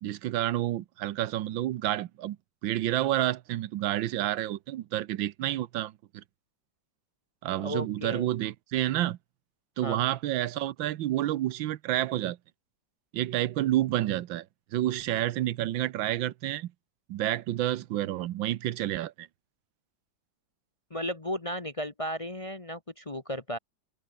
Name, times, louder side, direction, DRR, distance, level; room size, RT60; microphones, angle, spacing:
voice 1, 0.0-2.4 2.6-6.2 7.4-9.2 9.8-12.4 13.1-14.4 14.7-16.7 17.1-19.3, right 13 dB, 85° right, 1.6 m, -29 dB
voice 2, 7.6-8.3 9.8-10.0 20.9-23.6, equal, 25° left, 0.8 m, -34 dB
omnidirectional pair, 2.0 m